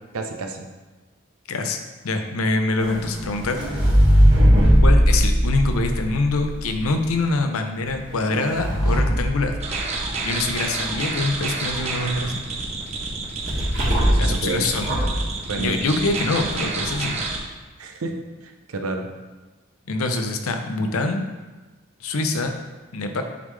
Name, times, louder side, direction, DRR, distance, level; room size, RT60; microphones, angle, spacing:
voice 1, 0.1-0.7 14.1-14.7 15.5-15.9 17.8-18.2 18.4-19.1, right 2 dB, 90° right, 4 dB, 0.7 m, -29 dB
voice 2, 1.5-1.8 2.0-4.1 4.8-9.6 10.2-12.4 14.2-15.1 15.6-17.2 19.9-21.2 22.0-22.5 22.9-23.2, left 2 dB, 85° left, 5 dB, 0.6 m, -25 dB
sound 1, 2.8-6.9 7.8-10.2 13.5-14.4 14.8-15.2, equal, 55° right, 1.8 m, -19 dB
sound 2, 9.6-17.4, right 3 dB, 30° right, 0.6 m, -29 dB
8.4 x 3.6 x 3.2 m, 1.2 s
head